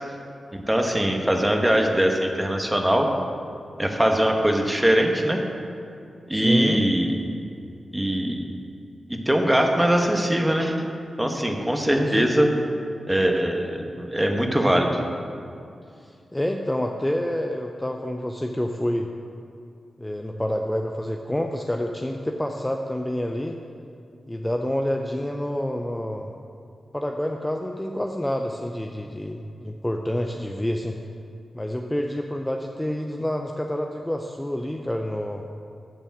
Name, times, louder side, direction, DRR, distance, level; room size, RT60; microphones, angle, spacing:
voice 1, 0.5-3.1 3.8-5.4 6.3-7.1 7.9-8.4 9.1-10.7 11.2-12.5 13.1-15.0, right 1 dB, 10° right, 3 dB, 1.2 m, -21 dB
voice 2, 6.3-6.8 11.9-12.3 16.0-19.1 20.0-23.6 24.3-26.3 26.9-31.0 31.5-35.4, left 1 dB, 10° left, 3 dB, 0.5 m, -28 dB
9.2 x 4.1 x 7.2 m, 2.5 s
cardioid pair, 50°, 0 cm